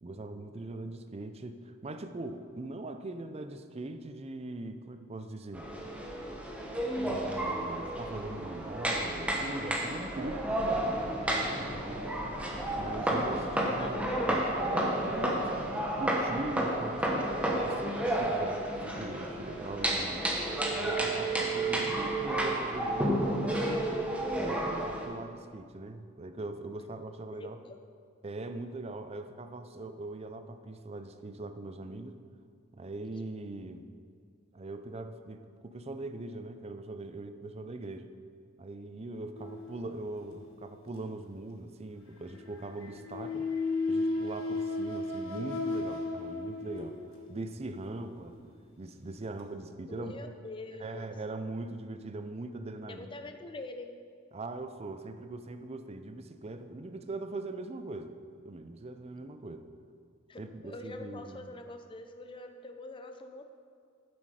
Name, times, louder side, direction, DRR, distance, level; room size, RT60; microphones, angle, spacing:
voice 1, 0.0-5.7 7.0-10.5 10.9-12.2 12.8-17.3 17.6-20.3 20.7-24.1 24.3-27.6 28.2-32.2 32.7-33.8 34.5-38.1 38.6-43.5 43.9-47.0 47.3-48.4 48.8-50.2 50.8-53.1 54.3-58.2 58.4-59.7 60.4-61.5, right 2 dB, 30° right, 8 dB, 0.5 m, -41 dB
sound 1, 5.5-25.1, right 1 dB, 5° right, 1.0 m, -31 dB
voice 2, 13.6-14.5 27.3-27.8 49.9-51.1 52.9-54.0 60.3-63.5, left 2 dB, 25° left, 6 dB, 0.6 m, -44 dB
sound 2, 39.3-40.3 42.3-47.4 48.2-48.4 49.2-49.3, left 3 dB, 70° left, 1.4 m, -34 dB
9.5 x 7.6 x 4.8 m, 2.1 s
head